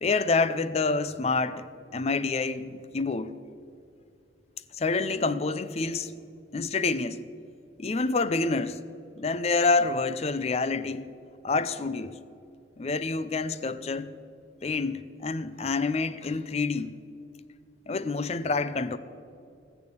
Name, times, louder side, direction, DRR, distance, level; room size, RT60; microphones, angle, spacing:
voice 1, 0.0-1.7 1.9-3.3 4.8-6.1 6.5-7.2 7.8-8.8 9.2-11.1 11.4-12.2 12.8-14.1 14.6-16.9 17.9-19.0, left 3 dB, 30° left, 0.4 m, -27 dB
16.0 x 6.9 x 8.2 m
head